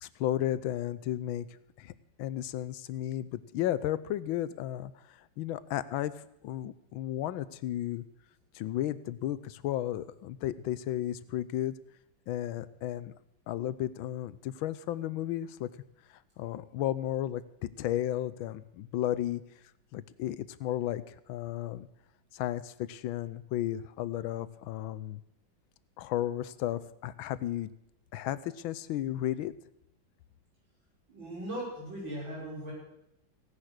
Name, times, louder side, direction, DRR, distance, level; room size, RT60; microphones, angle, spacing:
voice 1, 0.0-1.5 1.8-1.9 2.2-8.0 8.5-11.7 12.3-13.1 13.5-15.7 16.1-19.4 19.9-21.9 22.3-25.2 26.0-27.7 28.1-29.5, left 12 dB, 85° left, 16 dB, 1.5 m, -34 dB
voice 2, 31.1-32.7, right 1 dB, 75° right, -5 dB, 6.6 m, -38 dB
16.5 x 9.9 x 6.4 m, 0.81 s
omnidirectional pair, 2.1 m